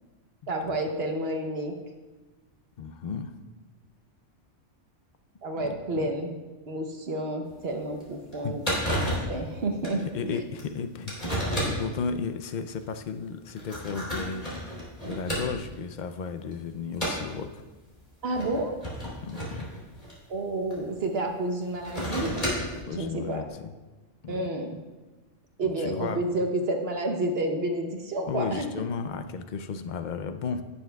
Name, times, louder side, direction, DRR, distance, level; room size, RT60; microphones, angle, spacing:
voice 1, 0.5-1.7 5.4-6.4 6.7-8.6 9.1-10.4 18.2-18.7 20.3-22.3 22.9-23.4 24.3-24.8 25.6-28.7, right 1 dB, 55° right, 4 dB, 1.1 m, -30 dB
voice 2, 2.8-3.3 5.6-6.1 8.4-8.6 10.1-11.1 11.6-14.5 15.1-17.6 19.2-19.7 22.9-23.7 24.2-24.5 25.8-26.2 28.3-30.6, left 5 dB, 60° left, 8 dB, 0.5 m, -34 dB
sound 1, 7.5-7.6 8.0-8.1 8.3-8.4 8.6-9.4 9.8-10.0 10.6-10.7 11.1-11.9 12.7-12.8 13.5-15.8 16.2-16.5 17.0-17.3 18.2-20.8 21.6-22.8, equal, 35° left, 3.2 m, -31 dB
16.0 x 7.1 x 2.3 m, 1.2 s
omnidirectional pair, 1.3 m